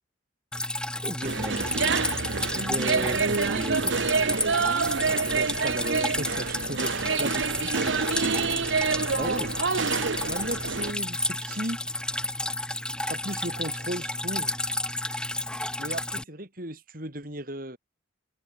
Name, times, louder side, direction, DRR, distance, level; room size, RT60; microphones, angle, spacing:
Drip, 0.5-16.2, left 1 dB, 5° left, 3.2 m, -32 dB
voice 1, 0.9-2.0 2.5-4.1 9.2-9.5, equal, 25° right, 5.0 m, -35 dB
sound 1, 1.2-10.9, right 4 dB, 75° right, 1.1 m, -27 dB
voice 2, 5.1-8.4 10.3-11.8 13.1-14.5 15.8-17.8, right 1 dB, 45° right, 5.7 m, -36 dB
head